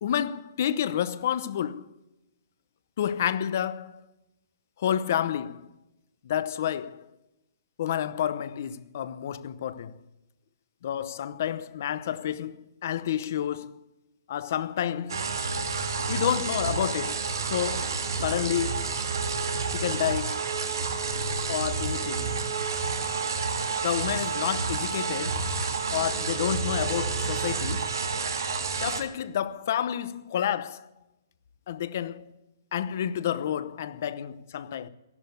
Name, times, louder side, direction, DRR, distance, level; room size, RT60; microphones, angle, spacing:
voice 1, 0.0-1.9 3.0-4.0 4.8-5.7 6.2-7.1 7.8-10.0 10.8-13.8 14.3-15.3 16.1-18.9 19.7-20.5 21.5-22.3 23.8-25.5 25.9-27.9 28.8-30.9 31.7-32.3 32.7-34.9, left 10 dB, 40° left, 0.8 m, -30 dB
sound 1, 15.1-29.0, right 4 dB, 90° right, 2.5 m, -29 dB
15.0 x 12.0 x 8.0 m
hypercardioid pair, 175°, 2 cm